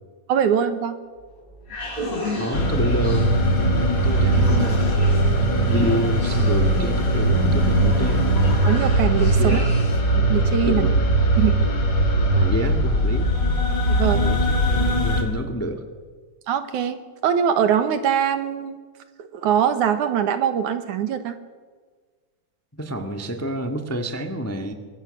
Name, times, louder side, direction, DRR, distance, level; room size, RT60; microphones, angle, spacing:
voice 1, 0.3-1.0 8.6-9.7 10.1-10.9 11.4-11.6 13.9-14.2 16.5-17.0 17.2-18.8 19.2-21.3, right 8 dB, 75° right, 9 dB, 2.8 m, -22 dB
sound 1, 1.1-10.1, left 1 dB, 55° left, 7.2 m, -34 dB
voice 2, 2.3-4.9 5.6-8.3 9.4-9.6 10.6-11.0 12.3-13.3 14.1-15.8 22.8-24.7, right 1 dB, 10° left, 5 dB, 0.8 m, -28 dB
sound 2, 2.5-15.2, right 1 dB, 35° left, 3.6 m, -20 dB
25.0 x 23.0 x 6.5 m, 1.5 s
omnidirectional pair, 3.5 m